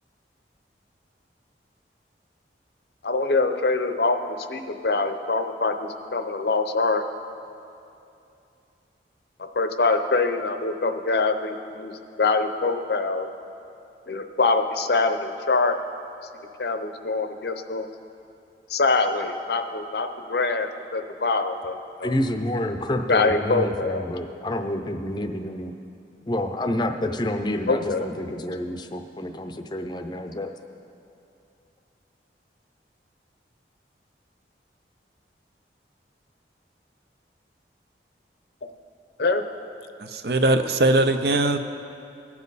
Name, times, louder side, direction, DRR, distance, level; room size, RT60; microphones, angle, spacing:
voice 1, 3.0-4.2 4.5-7.0 9.6-11.9 12.2-13.3 14.1-15.8 16.6-17.9 18.7-21.7 22.0-22.1 23.1-24.0 27.7-28.1 39.2-39.4, left 3 dB, 65° left, 7 dB, 0.7 m, -24 dB
voice 2, 22.0-25.7 26.3-30.5, left 1 dB, 25° left, 6 dB, 0.5 m, -28 dB
voice 3, 40.0-41.6, right 2 dB, 60° right, 8 dB, 0.6 m, -20 dB
19.5 x 7.4 x 4.1 m, 2.7 s
head